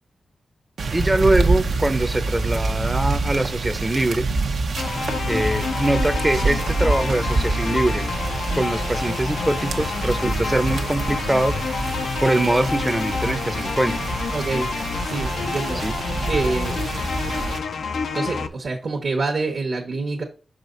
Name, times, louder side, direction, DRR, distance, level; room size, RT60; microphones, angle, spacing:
sound 1, 0.8-17.6, right 3 dB, 85° right, 0.8 m, -26 dB
voice 1, 0.9-4.3 5.3-8.1 8.6-11.6 12.2-13.9 15.8-15.9, right 1 dB, 15° right, 0.6 m, -23 dB
sound 2, 4.8-18.5, left 5 dB, 90° left, 0.5 m, -28 dB
voice 2, 14.3-14.7 15.0-15.8 16.3-16.8 18.1-20.2, right 3 dB, 65° right, 1.1 m, -26 dB
6.0 x 5.0 x 3.9 m
wide cardioid pair, 95°, 0 cm